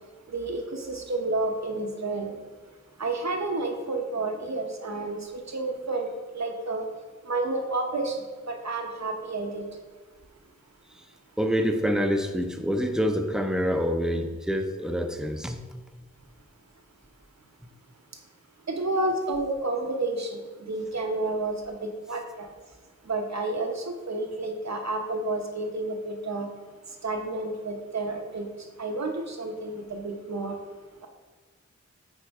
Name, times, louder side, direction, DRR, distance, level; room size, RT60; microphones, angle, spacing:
voice 1, 0.3-2.4 3.0-5.2 5.5-6.9 7.3-8.2 8.5-9.6 18.7-20.4 20.7-22.5 23.1-26.5 27.0-28.5 28.8-30.5, right 2 dB, 65° right, 3 dB, 0.9 m, -30 dB
voice 2, 11.4-15.6, equal, ahead, 5 dB, 0.6 m, -26 dB
9.2 x 3.9 x 3.6 m, 1.3 s
wide cardioid pair, 60°, 29 cm